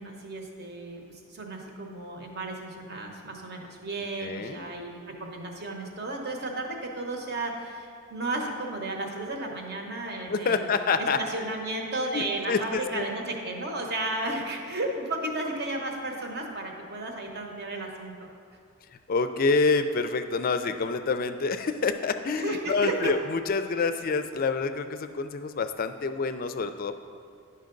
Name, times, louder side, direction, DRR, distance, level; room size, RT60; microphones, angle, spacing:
voice 1, 0.0-10.7 11.0-18.3 22.3-23.1, right 2 dB, 50° right, 2 dB, 1.0 m, -33 dB
voice 2, 4.2-4.6 10.3-11.2 12.1-13.1 19.1-27.0, left 4 dB, 40° left, 9 dB, 0.4 m, -27 dB
10.5 x 5.7 x 3.8 m, 2.3 s
head